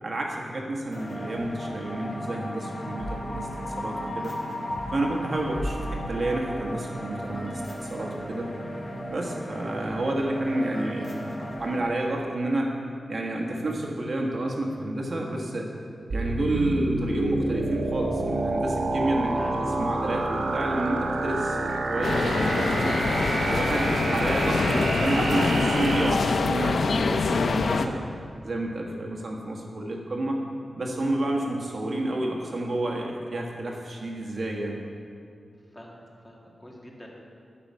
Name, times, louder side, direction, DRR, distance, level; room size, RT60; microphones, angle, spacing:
voice 1, 0.0-4.3 4.9-8.5 9.1-11.2 11.6-12.7 13.1-15.7 16.1-23.0 23.5-28.0 28.4-30.4 30.8-34.8, right 1 dB, 50° right, 0 dB, 1.5 m, -30 dB
sound 1, 0.9-11.8, equal, 45° left, 2.0 m, -35 dB
sound 2, 16.1-26.1, right 2 dB, 80° right, 1.4 m, -28 dB
sound 3, 22.0-27.9, left 4 dB, 75° left, 0.6 m, -25 dB
voice 2, 35.7-37.1, equal, 15° left, -2 dB, 2.0 m, -45 dB
11.5 x 6.8 x 8.5 m, 2.3 s
wide cardioid pair, 135°, 0 cm